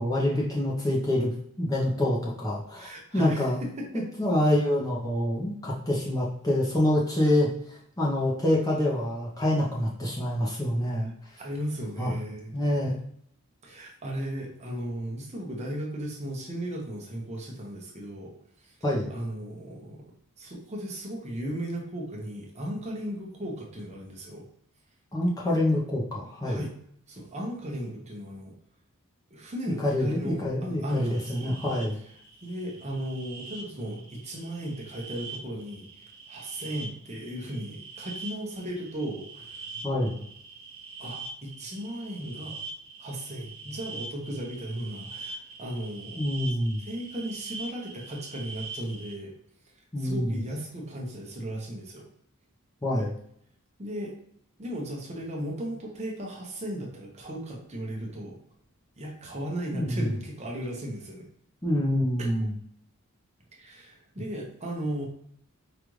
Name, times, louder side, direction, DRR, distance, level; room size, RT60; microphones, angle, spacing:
voice 1, 0.0-3.6 3.9-11.4 12.0-12.1 12.5-13.0 18.8-19.1 25.1-26.6 29.8-32.0 39.8-40.2 46.2-46.8 49.9-50.4 52.8-53.1 59.7-60.0 61.6-62.5, left 1 dB, 15° left, -4 dB, 0.7 m, -26 dB
voice 2, 2.7-4.1 11.4-12.5 13.6-18.4 18.6-18.8 19.1-20.0 20.4-24.5 26.4-26.7 27.1-28.5 29.3-31.6 32.4-39.8 41.0-42.6 43.0-46.2 46.8-49.3 49.7-52.1 53.8-54.1 54.6-58.4 59.0-61.3 62.2-62.3 63.6-65.1, equal, 30° right, -1 dB, 0.8 m, -36 dB
sound 1, 30.9-49.2, right 3 dB, 70° right, 0.9 m, -43 dB
5.0 x 2.5 x 3.1 m, 0.68 s
head